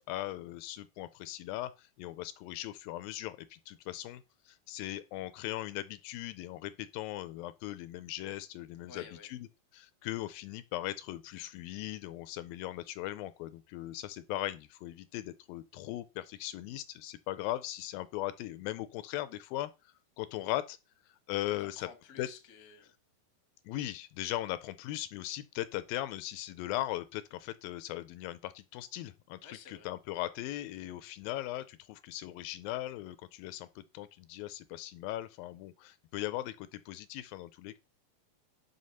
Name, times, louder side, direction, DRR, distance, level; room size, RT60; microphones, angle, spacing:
voice 1, 0.0-9.0 9.3-9.4 9.7-19.7 20.2-20.8 21.3-21.9 22.2-22.3 23.7-29.4 29.7-37.8, left 15 dB, 80° left, 2.2 m, -39 dB
voice 2, 8.9-9.3 21.5-22.9 29.4-29.9, left 6 dB, 45° left, 1.1 m, -52 dB
6.4 x 5.6 x 5.5 m
omnidirectional pair, 4.3 m